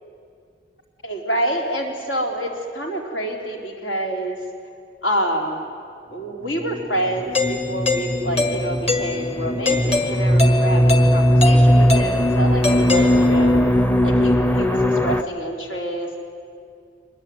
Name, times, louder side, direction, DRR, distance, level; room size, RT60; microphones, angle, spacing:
voice 1, 1.0-4.4 5.0-5.7 6.1-13.6 14.0-14.8 15.0-16.2, right 1 dB, 80° left, 1 dB, 3.8 m, -27 dB
sound 1, 6.7-15.2, equal, 10° left, 0.7 m, -18 dB
Doorbell, 7.3-13.7, left 3 dB, 35° left, 1.9 m, -24 dB
24.5 x 20.0 x 9.5 m, 2.3 s
head